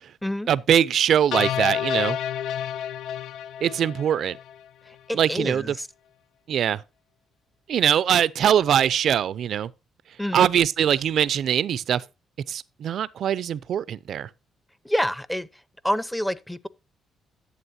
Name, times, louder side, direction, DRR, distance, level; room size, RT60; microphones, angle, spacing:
voice 1, 0.5-2.2 3.6-4.4 5.1-5.8 6.5-6.8 7.7-9.7 10.3-12.0 12.5-14.3, right 9 dB, 65° right, 0.5 m, -22 dB
sound 1, 1.3-4.6, left 9 dB, 80° left, 0.3 m, -29 dB
voice 2, 5.1-5.9 10.2-10.4 14.8-15.5 15.8-16.7, equal, 5° left, 0.7 m, -27 dB
11.0 x 8.0 x 2.7 m
cardioid pair, 90°, 0 cm